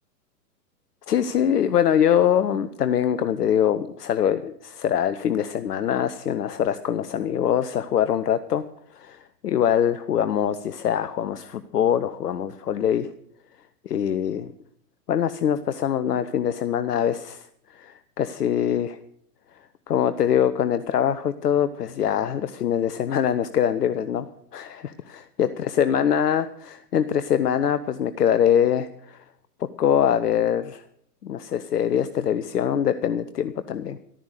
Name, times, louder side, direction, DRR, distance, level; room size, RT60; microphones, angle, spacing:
voice 1, 1.1-8.6 8.9-13.1 13.8-14.5 15.1-19.0 19.9-24.3 24.5-29.2 29.8-30.8 31.2-34.0, left 9 dB, 75° left, 12 dB, 0.9 m, -23 dB
14.0 x 12.0 x 6.6 m, 0.68 s
hypercardioid pair, 110°, 47 cm